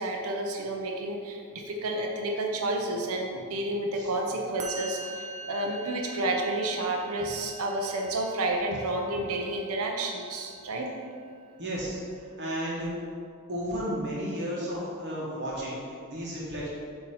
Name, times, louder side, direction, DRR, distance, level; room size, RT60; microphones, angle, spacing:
voice 1, 0.0-10.9, right 2 dB, 75° right, 2 dB, 0.6 m, -30 dB
Musical instrument, 4.6-11.9, right 3 dB, 35° right, 0.6 m, -44 dB
voice 2, 11.6-12.0 12.4-12.9 13.5-16.7, equal, 50° right, -6 dB, 1.1 m, -33 dB
6.8 x 2.8 x 5.0 m, 2.3 s
head